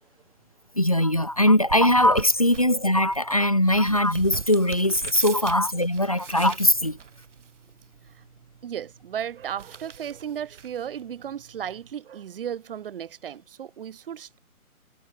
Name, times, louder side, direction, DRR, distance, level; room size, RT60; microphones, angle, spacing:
voice 1, 0.8-7.0, left 1 dB, 25° left, 0.4 m, -21 dB
sound 1, 0.9-11.9, right 6 dB, 55° right, 4.0 m, -43 dB
voice 2, 8.6-14.4, right 9 dB, 40° right, 2.2 m, -35 dB
figure-of-eight pair, 145°, 43 cm